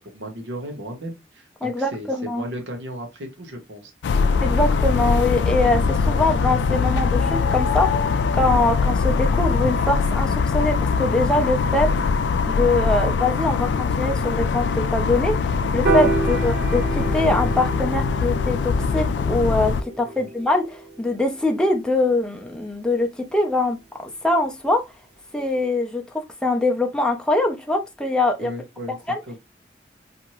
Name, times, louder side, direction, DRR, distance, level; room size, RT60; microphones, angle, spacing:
voice 1, 0.0-3.9 16.1-16.4 20.0-20.3 28.4-29.0 29.3-29.4, equal, 85° right, 0.8 m, -35 dB
voice 2, 1.6-2.5 4.4-7.9 8.4-11.9 12.5-23.8 24.2-24.8 25.3-28.5 29.1-29.2, left 2 dB, 5° left, 0.4 m, -23 dB
sound 1, 4.0-19.8, left 5 dB, 70° left, 0.3 m, -22 dB
Piano, 15.8-22.2, right 3 dB, 65° right, 1.2 m, -29 dB
2.8 x 2.5 x 2.9 m
head